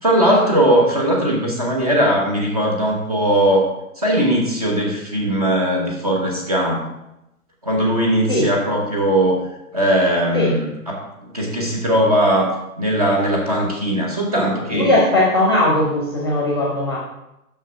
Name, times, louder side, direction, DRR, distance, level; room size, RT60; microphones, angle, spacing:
voice 1, 0.0-3.7 4.0-6.9 7.6-9.4 9.7-15.0, right 1 dB, 25° right, -2 dB, 1.0 m, -19 dB
voice 2, 14.7-17.0, left 1 dB, 15° left, -3 dB, 0.9 m, -18 dB
6.0 x 5.5 x 5.6 m, 0.89 s
hypercardioid pair, 180°, 45 cm